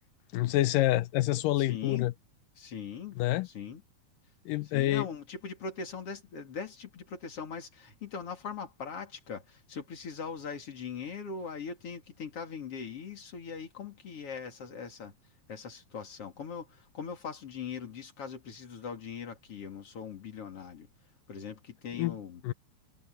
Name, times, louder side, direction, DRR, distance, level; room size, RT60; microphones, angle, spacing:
voice 1, 0.3-2.1 3.2-3.5 4.5-5.1 21.9-22.2 22.4-22.5, left 15 dB, 80° left, 2.3 m, -27 dB
voice 2, 1.6-2.1 2.6-3.2 3.4-3.8 4.7-15.1 15.5-20.9 21.3-22.4, left 6 dB, 45° left, 3.5 m, -41 dB
omnidirectional pair, 4.0 m